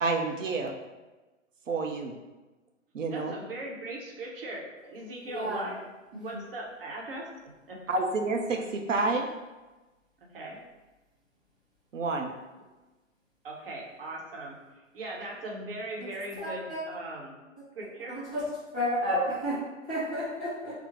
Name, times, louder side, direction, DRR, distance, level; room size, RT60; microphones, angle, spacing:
voice 1, 0.0-0.7 1.7-2.2 2.9-3.3 7.9-9.3 11.9-12.3, right 3 dB, 70° right, 3 dB, 0.5 m, -29 dB
voice 2, 3.1-5.8 6.2-7.3 7.7-7.8 10.2-10.6 13.4-17.4 17.7-18.2, right 2 dB, 45° right, -2 dB, 0.9 m, -39 dB
voice 3, 5.3-5.7 6.1-6.4 16.4-16.8 18.1-18.4 18.7-19.5 19.9-20.7, equal, 5° left, -15 dB, 0.4 m, -31 dB
4.3 x 2.0 x 3.0 m, 1.2 s
figure-of-eight pair, 125°, 39 cm